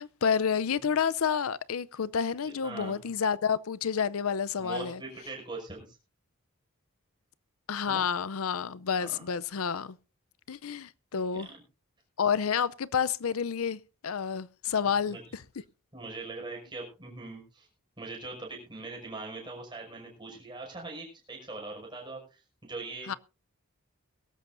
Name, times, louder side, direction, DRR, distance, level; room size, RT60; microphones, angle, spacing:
voice 1, 0.0-5.0 7.7-10.0 10.5-11.5 12.2-15.4 23.1-23.2, left 7 dB, 75° left, 0.6 m, -29 dB
voice 2, 2.5-3.1 4.6-5.8 7.9-8.0 9.0-9.1 11.5-11.6 14.8-15.2 15.9-17.7 18.0-23.1, right 3 dB, 20° right, 5.8 m, -41 dB
22.5 x 13.0 x 2.6 m
head